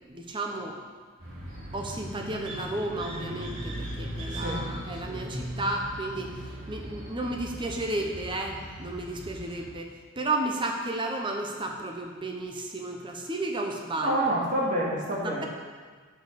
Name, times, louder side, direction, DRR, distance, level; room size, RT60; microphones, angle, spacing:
voice 1, 0.1-0.8 1.7-6.3 6.7-14.1 15.2-15.5, right 2 dB, 25° right, 2 dB, 0.8 m, -33 dB
sound 1, 1.2-9.7, right 1 dB, 65° right, 2.3 m, -38 dB
voice 2, 4.3-4.6 5.1-5.2 14.0-15.5, right 1 dB, 40° right, -5 dB, 2.1 m, -28 dB
7.8 x 6.2 x 6.7 m, 1.5 s
head